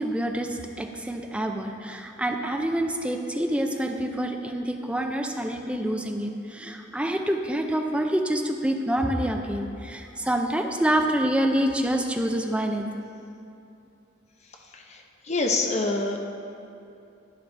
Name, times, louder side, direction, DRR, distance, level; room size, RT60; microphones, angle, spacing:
voice 1, 0.0-12.9, right 1 dB, 5° right, 3 dB, 0.5 m, -27 dB
voice 2, 14.7-16.2, left 3 dB, 35° left, 2 dB, 0.8 m, -26 dB
11.0 x 9.6 x 3.4 m, 2.7 s
head